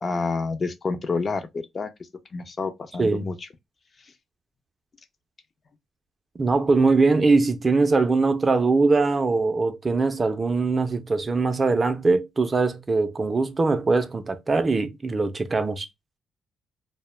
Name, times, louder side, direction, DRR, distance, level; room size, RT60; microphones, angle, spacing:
voice 1, 0.0-1.9 2.3-3.5, left 4 dB, 40° left, 0.4 m, -28 dB
voice 2, 3.0-3.3 6.4-15.9, right 3 dB, 30° right, 0.4 m, -22 dB
2.1 x 2.1 x 3.1 m
cardioid pair, 85°, 0 cm